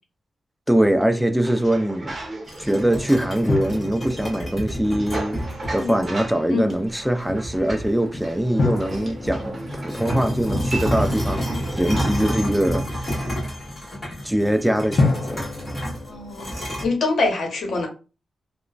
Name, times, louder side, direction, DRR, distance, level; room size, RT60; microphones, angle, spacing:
voice 1, 0.7-2.2 2.6-5.4 5.7-11.4 11.7-13.3 14.2-15.5, right 1 dB, 5° right, 0.3 m, -22 dB
sound 1, 1.4-12.2, right 2 dB, 30° right, 0.8 m, -37 dB
sound 2, 2.5-6.1 6.7-6.8 7.3-8.4 8.7-16.9, equal, 25° left, 1.5 m, -29 dB
sound 3, 3.5-5.7 8.6-11.5 15.0-16.9, left 3 dB, 55° left, 0.6 m, -29 dB
voice 2, 16.0-17.9, left 3 dB, 70° left, 0.9 m, -24 dB
2.9 x 2.1 x 2.4 m
wide cardioid pair, 110°, 0 cm